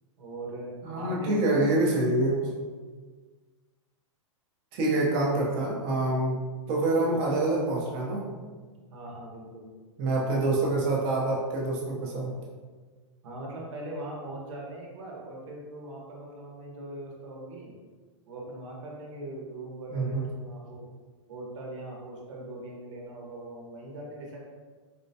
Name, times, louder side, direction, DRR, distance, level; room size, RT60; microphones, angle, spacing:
voice 1, 0.2-2.0 2.4-2.5 8.9-9.7 13.2-17.7 18.3-20.9 21.3-24.4, right 1 dB, 70° right, -3 dB, 1.0 m, -41 dB
voice 2, 0.8-2.5 4.7-6.4 6.7-8.3 10.0-12.3 19.9-20.2, right 2 dB, 30° right, -3 dB, 0.7 m, -26 dB
4.3 x 2.1 x 2.7 m, 1.4 s
hypercardioid pair, 155°, 16 cm